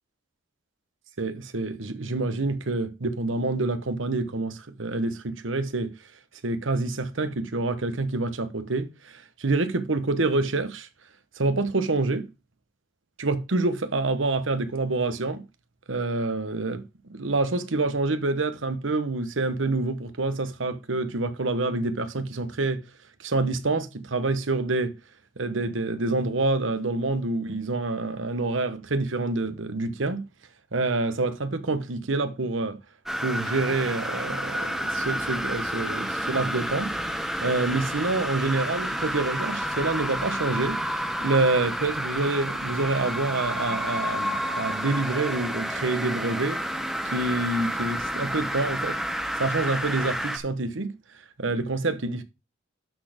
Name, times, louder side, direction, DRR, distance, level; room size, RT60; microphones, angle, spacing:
voice 1, 1.2-6.0 6.4-10.9 11.4-12.3 13.2-15.4 15.9-16.8 17.1-22.8 23.2-25.0 25.4-30.2 30.7-32.8 33.2-37.0 37.4-46.6 47.0-49.0 49.4-50.9 51.4-52.2, right 3 dB, 85° right, 1.1 m, -27 dB
sound 1, 33.1-50.4, equal, ahead, 1.0 m, -30 dB
12.0 x 4.3 x 5.0 m
head